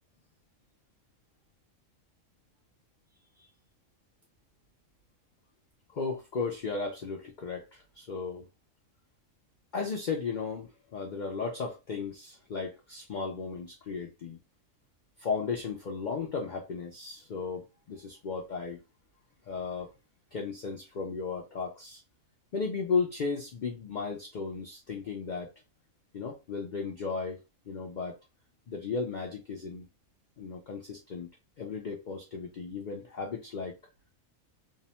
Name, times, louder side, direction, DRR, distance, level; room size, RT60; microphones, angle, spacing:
voice 1, 5.9-8.5 9.7-14.4 15.2-18.8 19.4-19.9 20.3-22.0 22.5-25.5 26.1-27.4 27.7-28.2 28.7-29.9 30.4-31.3 31.6-33.8, left 5 dB, 80° left, 0.4 m, -35 dB
2.7 x 2.2 x 2.8 m
omnidirectional pair, 1.4 m